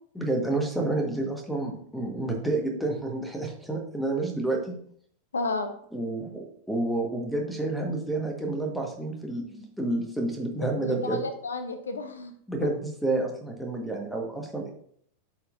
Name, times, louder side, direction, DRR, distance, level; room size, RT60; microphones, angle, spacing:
voice 1, 0.1-4.7 5.9-11.2 12.5-14.7, right 2 dB, ahead, 2 dB, 1.5 m, -29 dB
voice 2, 5.3-5.7 10.6-12.3, left 3 dB, 70° left, 9 dB, 0.6 m, -32 dB
12.5 x 4.4 x 2.6 m, 0.62 s
figure-of-eight pair, 90°, 0 cm